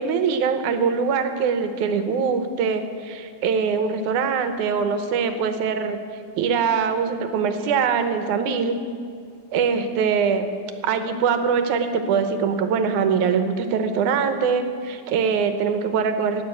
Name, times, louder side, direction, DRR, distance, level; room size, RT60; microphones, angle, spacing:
voice 1, 0.0-6.0 6.4-8.8 9.5-10.5 10.8-16.4, right 6 dB, 75° right, 8 dB, 2.3 m, -23 dB
18.5 x 7.3 x 8.4 m, 2.2 s
omnidirectional pair, 3.6 m